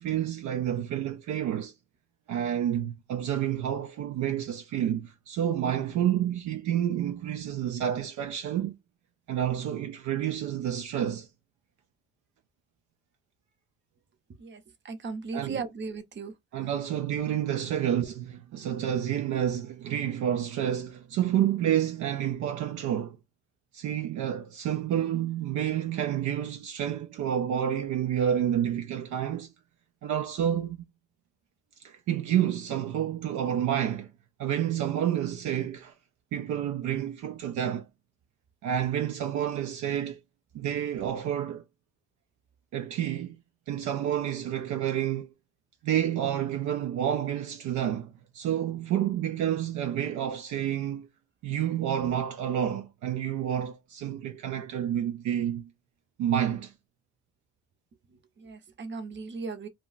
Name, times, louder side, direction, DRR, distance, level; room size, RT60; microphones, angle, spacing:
voice 1, 0.0-1.7 2.3-8.7 9.3-11.3 15.3-15.6 16.5-23.2 23.7-29.5 30.0-30.8 31.8-34.1 34.4-35.9 36.3-37.9 38.6-40.2 40.5-41.6 42.7-43.4 43.7-45.3 45.8-51.1 51.4-55.7 56.2-56.7, right 10 dB, 75° right, 0.5 m, -29 dB
voice 2, 14.4-16.3 58.4-59.7, right 4 dB, 40° right, 0.7 m, -37 dB
2.3 x 2.1 x 3.8 m
cardioid pair, 90°, 30 cm